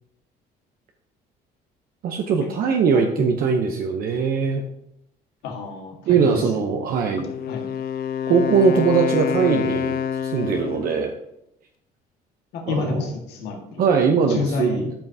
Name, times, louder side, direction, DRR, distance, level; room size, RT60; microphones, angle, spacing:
voice 1, 2.0-4.6 6.1-7.3 8.3-11.1 12.7-13.1 13.8-14.9, right 5 dB, 60° right, 3 dB, 0.8 m, -21 dB
voice 2, 2.9-3.3 5.4-6.4 7.5-7.7 12.5-13.9 14.3-14.9, left 4 dB, 80° left, 1 dB, 1.7 m, -29 dB
Wind instrument woodwind instrument, 7.2-11.0, left 8 dB, 65° left, 0.5 m, -27 dB
11.5 x 5.6 x 2.7 m, 0.79 s
cardioid pair, 110°, 17 cm